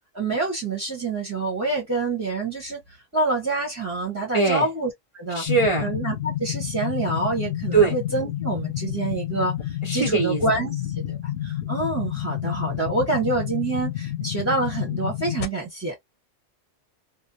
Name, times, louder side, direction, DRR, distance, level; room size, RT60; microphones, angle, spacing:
voice 1, 0.1-5.4 5.8-15.9, right 3 dB, 15° right, 0.8 m, -27 dB
voice 2, 4.3-4.7 5.3-5.9 7.7-8.0 9.8-10.4, right 4 dB, 40° right, 0.4 m, -21 dB
sound 1, 5.5-15.5, left 12 dB, 90° left, 1.0 m, -30 dB
2.6 x 2.0 x 2.5 m
omnidirectional pair, 1.3 m